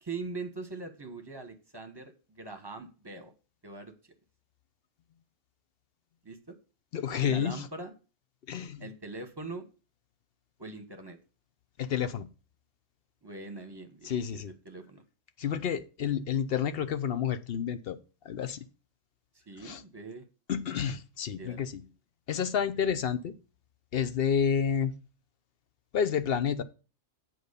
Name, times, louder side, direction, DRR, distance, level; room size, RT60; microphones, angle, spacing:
voice 1, 0.0-3.3 3.6-3.9 6.2-6.6 7.3-7.9 8.8-9.7 10.6-11.2 13.2-15.0 19.5-20.2 21.4-21.7, right 3 dB, 20° right, 7 dB, 1.1 m, -42 dB
voice 2, 6.9-7.7 8.5-8.9 11.8-12.3 14.0-14.5 15.4-18.0 18.2-18.6 19.6-19.8 20.5-21.8 22.3-23.3 23.9-24.9 25.9-26.6, left 8 dB, 55° left, 12 dB, 0.8 m, -30 dB
7.7 x 4.6 x 6.6 m, 0.34 s
omnidirectional pair, 1.3 m